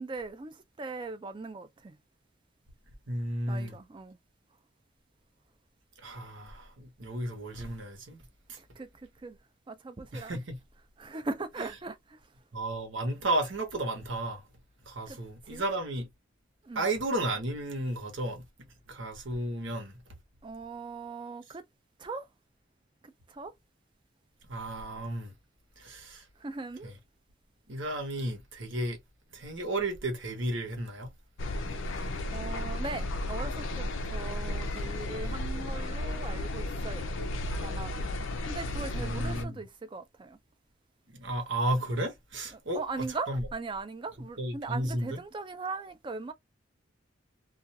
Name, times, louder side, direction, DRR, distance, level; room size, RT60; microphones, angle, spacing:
voice 1, 0.0-2.0 3.5-4.2 8.6-8.9 9.2-9.4 9.7-10.4 11.0-12.2 15.1-15.2 15.5-15.6 16.6-16.8 20.4-21.7 22.0-22.3 23.0-23.5 26.4-26.9 32.3-37.1 37.6-38.1 38.5-40.4 42.5-46.3, right 3 dB, 25° right, 0.4 m, -39 dB
voice 2, 3.1-3.8 6.0-8.2 10.1-10.6 12.5-14.4 14.9-16.1 16.7-18.4 18.9-20.0 24.5-25.3 25.8-26.2 26.8-26.9 27.7-29.0 29.3-31.1 39.0-39.6 41.2-43.4 44.4-45.2, right 1 dB, 75° right, 0.9 m, -33 dB
sound 1, 31.4-39.4, left 1 dB, 80° left, 0.4 m, -34 dB
2.4 x 2.2 x 2.7 m
head